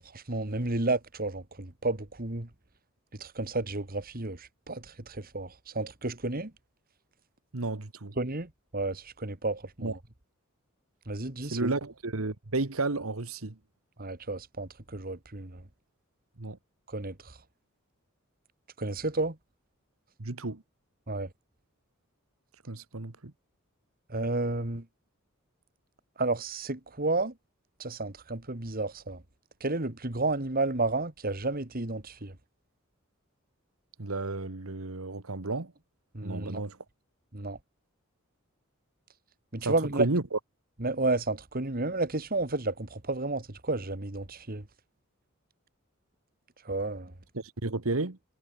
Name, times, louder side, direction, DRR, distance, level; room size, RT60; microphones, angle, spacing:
voice 1, 0.0-2.5 3.2-6.5 8.2-9.9 11.1-11.7 14.0-15.6 16.9-17.1 18.8-19.4 21.1-21.3 24.1-24.8 26.2-27.3 27.8-29.2 29.6-32.3 36.1-36.6 37.3-37.6 39.5-40.1 40.8-44.6 46.7-47.1, right 2 dB, 45° right, 2.2 m, -31 dB
voice 2, 7.5-8.1 9.8-10.0 11.4-13.5 16.4-16.6 20.2-20.6 22.7-23.3 34.0-35.7 36.2-36.8 39.6-40.4 47.3-48.2, right 3 dB, 80° right, 1.5 m, -32 dB
head